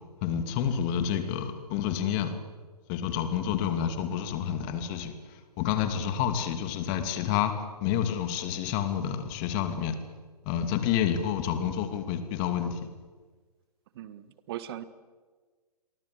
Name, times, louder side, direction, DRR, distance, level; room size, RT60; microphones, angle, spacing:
voice 1, 0.2-2.3 2.9-5.1 5.6-7.5 7.8-10.0 10.5-12.8, left 9 dB, 30° left, 8 dB, 2.6 m, -29 dB
voice 2, 13.9-14.8, right 12 dB, 40° right, 15 dB, 1.5 m, -39 dB
30.0 x 23.5 x 8.1 m, 1.4 s
figure-of-eight pair, 125°, 21 cm